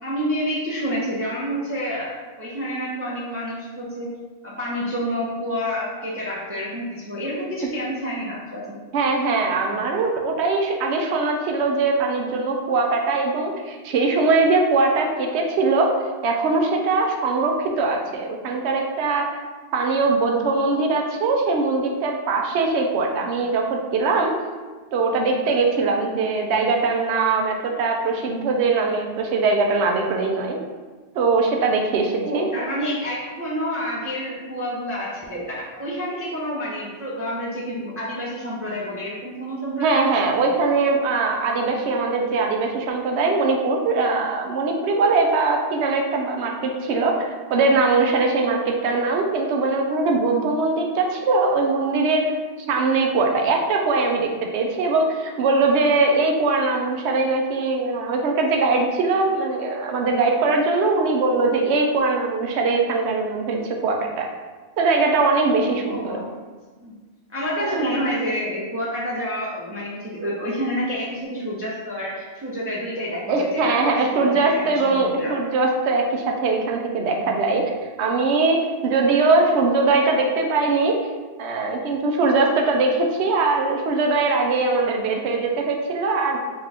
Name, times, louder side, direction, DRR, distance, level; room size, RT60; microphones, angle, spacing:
voice 1, 0.0-2.1 2.4-4.1 4.4-8.8 32.2-40.1 65.9-66.5 66.8-66.9 67.3-75.3, equal, 20° right, -6 dB, 0.4 m, -28 dB
voice 2, 8.9-16.0 16.2-19.3 19.7-24.3 24.9-30.6 31.1-32.5 39.8-52.3 52.7-64.3 64.8-66.2 67.6-67.8 73.3-77.6 78.0-81.0 81.4-86.4, right 3 dB, 85° right, 1 dB, 0.9 m, -21 dB
4.3 x 2.4 x 3.4 m, 1.3 s
omnidirectional pair, 1.1 m